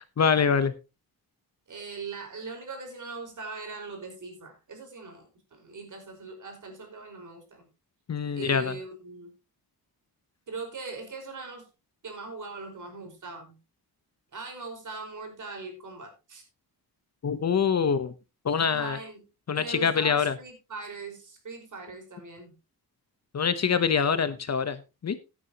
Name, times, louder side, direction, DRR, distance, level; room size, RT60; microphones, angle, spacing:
voice 1, 0.2-0.7 8.1-8.8 17.2-18.1 18.4-19.0 19.5-20.3 23.3-25.2, left 6 dB, 45° left, 12 dB, 1.0 m, -25 dB
voice 2, 1.7-7.7 8.3-9.3 10.5-11.7 12.0-13.6 14.3-16.4 18.7-19.2 19.5-22.5, right 3 dB, 50° right, 4 dB, 5.0 m, -40 dB
16.0 x 9.7 x 2.9 m, 0.27 s
wide cardioid pair, 170°, 38 cm